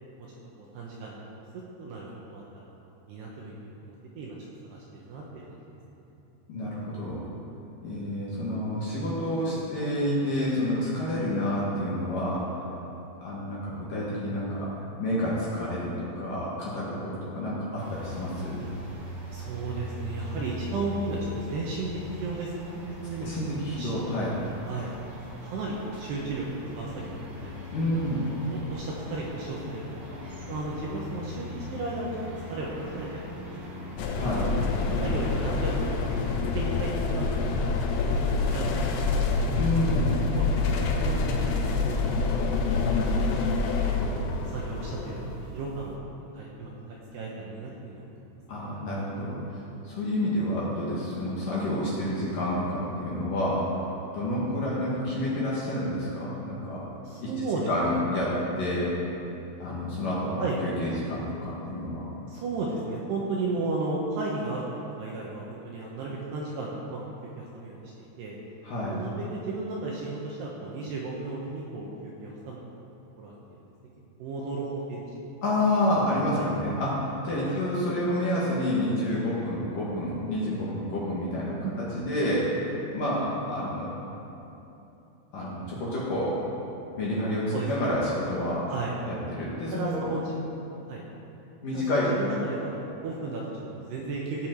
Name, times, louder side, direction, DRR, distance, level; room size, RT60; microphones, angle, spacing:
voice 1, 0.6-1.2 1.8-2.7 3.1-4.4 4.6-5.4 19.3-23.4 23.8-23.9 24.7-24.9 25.4-27.5 27.9-28.0 28.3-30.0 30.5-32.1 32.5-33.4 33.7-34.0 34.7-36.1 36.4-37.3 37.6-38.2 38.5-39.3 39.7-39.9 40.3-41.9 42.2-42.4 42.8-43.3 44.5-48.2 48.7-48.9 57.1-58.0 60.4-60.6 62.3-64.6 65.0-68.4 68.9-72.8 73.2-73.3 74.2-75.1 75.8-76.4 77.4-77.6 81.6-81.8 87.5-88.0 88.7-88.9 89.7-90.2 90.9-91.0 91.7-94.5, right 3 dB, 75° right, -4 dB, 2.7 m, -35 dB
voice 2, 6.5-7.2 7.8-12.5 13.2-14.7 15.0-18.6 23.2-24.4 27.7-28.3 34.1-34.5 39.6-40.2 48.5-49.6 49.8-53.7 54.1-56.8 57.2-57.3 57.7-58.9 59.6-62.0 68.6-68.9 75.4-81.6 81.9-83.9 85.3-86.4 87.0-88.7 89.1-90.1 91.6-92.1, left 1 dB, 55° left, -7 dB, 2.6 m, -29 dB
sound 1, 17.8-36.3, left 2 dB, 50° right, 1.6 m, -40 dB
sound 2, 34.0-46.0, left 4 dB, 85° left, 3.5 m, -27 dB
16.0 x 8.5 x 4.6 m, 3.0 s
omnidirectional pair, 5.8 m